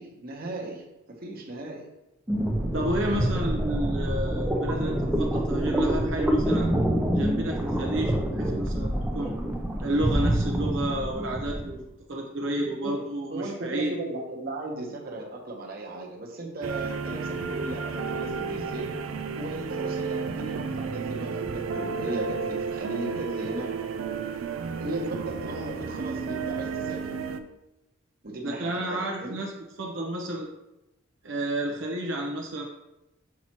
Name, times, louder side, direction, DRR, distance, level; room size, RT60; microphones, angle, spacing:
voice 1, 0.0-1.9 12.8-18.9 19.4-23.7 24.8-27.1 28.2-29.4, right 2 dB, 45° right, -1 dB, 1.1 m, -36 dB
sound 1, 2.3-11.7, equal, 10° right, 0.6 m, -26 dB
voice 2, 2.7-6.7 7.1-9.3 9.8-13.9 28.4-30.5 31.2-32.6, right 1 dB, 70° right, -1 dB, 0.8 m, -31 dB
sound 2, 16.6-27.4, right 5 dB, 90° right, 0.5 m, -32 dB
6.0 x 5.5 x 3.0 m, 0.92 s
head